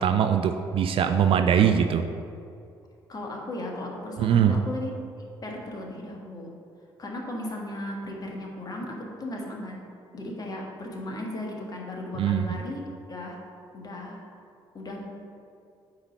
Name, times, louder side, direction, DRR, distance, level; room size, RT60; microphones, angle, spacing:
voice 1, 0.0-2.0 4.2-4.6 12.2-12.6, right 8 dB, 45° right, 7 dB, 0.4 m, -22 dB
voice 2, 3.1-5.0 5.4-6.5 7.0-9.8 10.1-13.4 13.7-14.2 14.7-15.0, left 1 dB, 30° left, -1 dB, 1.4 m, -36 dB
8.6 x 3.1 x 5.4 m, 2.4 s
figure-of-eight pair, 45°, 13 cm